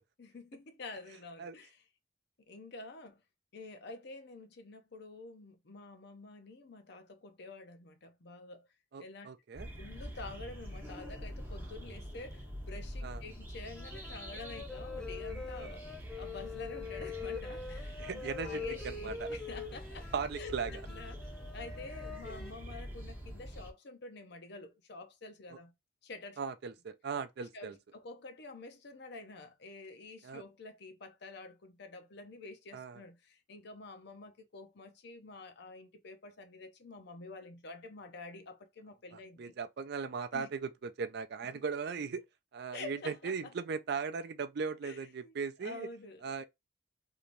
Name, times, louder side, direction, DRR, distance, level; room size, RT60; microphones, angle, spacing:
voice 1, 0.2-1.8 2.4-3.2 3.5-8.7 9.0-9.3 9.8-20.1 20.4-21.3 21.5-25.7 26.0-26.4 27.4-39.5 40.3-40.5 42.7-43.5 44.8-46.3, left 3 dB, 60° left, 0.6 m, -48 dB
voice 2, 8.9-9.7 13.0-13.2 15.6-15.7 18.0-19.3 20.1-20.8 26.4-27.7 30.2-30.4 32.7-33.0 39.1-42.2 42.5-45.9 46.2-46.4, right 5 dB, 55° right, 0.4 m, -38 dB
sound 1, 9.5-23.7, equal, 10° right, 1.1 m, -45 dB
sound 2, 13.8-22.5, left 4 dB, 5° left, 0.4 m, -44 dB
3.2 x 2.8 x 2.5 m
head